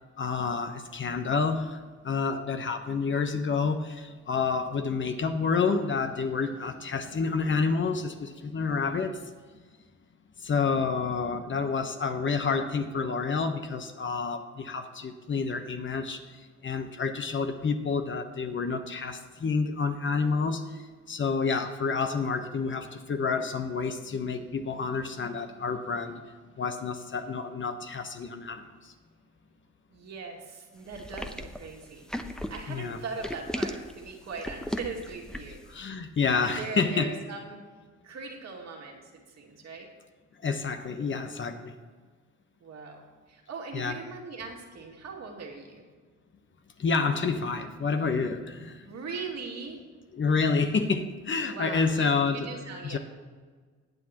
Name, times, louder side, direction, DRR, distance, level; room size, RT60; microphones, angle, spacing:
voice 1, 0.2-9.2 10.4-16.4 16.6-26.2 26.6-28.9 32.7-33.0 35.7-37.1 40.4-41.7 43.7-44.0 46.8-48.9 50.1-52.5 52.8-53.0, left 5 dB, 40° left, 7 dB, 1.0 m, -29 dB
voice 2, 29.9-32.1 32.5-35.6 36.4-37.6 38.0-39.9 42.6-45.9 48.9-49.8 51.4-53.0, right 4 dB, 60° right, 0 dB, 2.4 m, -40 dB
sound 1, 30.9-35.7, equal, ahead, 0.8 m, -36 dB
20.0 x 7.5 x 3.0 m, 1.5 s
cardioid pair, 90°, 30 cm